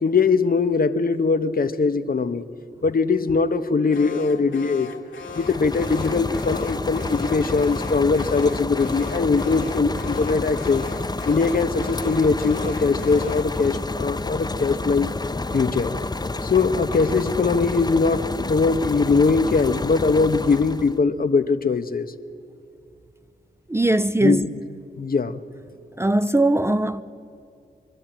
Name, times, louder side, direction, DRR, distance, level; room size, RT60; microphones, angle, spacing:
voice 1, 0.0-2.4 2.8-4.9 5.3-10.8 11.2-15.1 15.5-16.0 16.4-22.1 24.2-24.5 25.0-25.4, left 4 dB, 50° left, 1.0 m, -21 dB
Alarm, 3.9-13.6, left 5 dB, 75° left, 1.5 m, -39 dB
sound 1, 5.2-21.0, left 2 dB, 20° left, 0.8 m, -29 dB
voice 2, 23.7-24.5 26.0-27.0, right 1 dB, 15° right, 0.6 m, -20 dB
24.0 x 12.0 x 9.0 m
cardioid pair, 45°, 20 cm